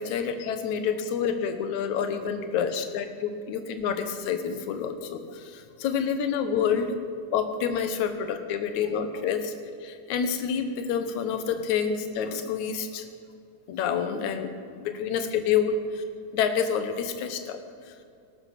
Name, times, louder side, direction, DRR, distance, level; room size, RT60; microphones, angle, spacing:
voice 1, 0.0-7.0 7.3-9.5 9.8-13.0 13.7-14.5 14.8-15.8 16.3-18.0, left 7 dB, 70° left, 8 dB, 2.4 m, -28 dB
20.0 x 12.5 x 5.8 m, 2.5 s
omnidirectional pair, 3.7 m